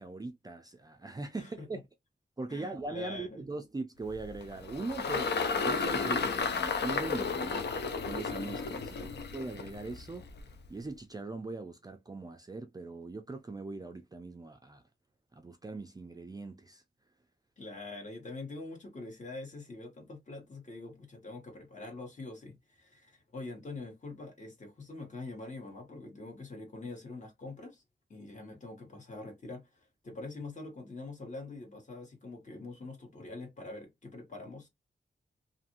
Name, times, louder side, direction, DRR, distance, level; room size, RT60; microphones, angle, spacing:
voice 1, 0.0-1.8 2.4-10.3 10.7-14.8 15.4-16.8, right 3 dB, 20° right, 0.4 m, -41 dB
voice 2, 1.3-1.8 2.5-3.4 8.9-9.3 17.6-27.8 28.1-34.7, left 2 dB, 40° left, 1.2 m, -44 dB
Engine, 4.1-10.7, left 4 dB, 65° left, 0.5 m, -33 dB
2.6 x 2.5 x 2.8 m
wide cardioid pair, 135°, 19 cm